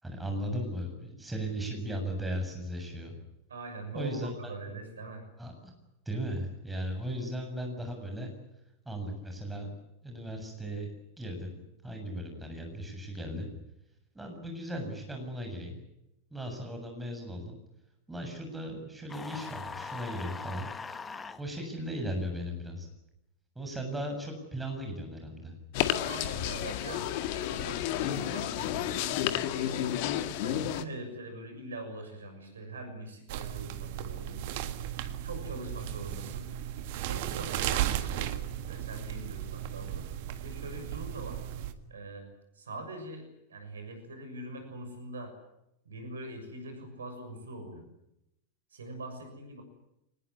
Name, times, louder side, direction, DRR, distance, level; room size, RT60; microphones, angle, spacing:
voice 1, 0.0-3.2 3.9-4.5 5.4-5.7 6.1-8.3 8.9-9.7 10.0-10.9 11.2-11.6 11.8-13.5 14.1-15.8 16.3-17.6 18.1-20.7 21.4-22.9 23.6-25.5, equal, 5° right, 3 dB, 7.4 m, -37 dB
voice 2, 3.5-5.2 26.0-30.0 30.4-34.4 35.2-36.5 37.1-38.3 38.7-40.1 40.4-41.4 41.9-42.3 42.5-45.3 45.8-47.9 48.7-49.6, right 2 dB, 70° right, 6 dB, 6.7 m, -43 dB
sound 1, 19.1-21.4, left 5 dB, 15° left, 1.4 m, -41 dB
sound 2, 25.7-30.8, left 11 dB, 45° left, 1.7 m, -31 dB
sound 3, 33.3-41.7, right 12 dB, 50° right, 1.8 m, -35 dB
25.0 x 20.0 x 9.9 m, 0.86 s
figure-of-eight pair, 90°, 0 cm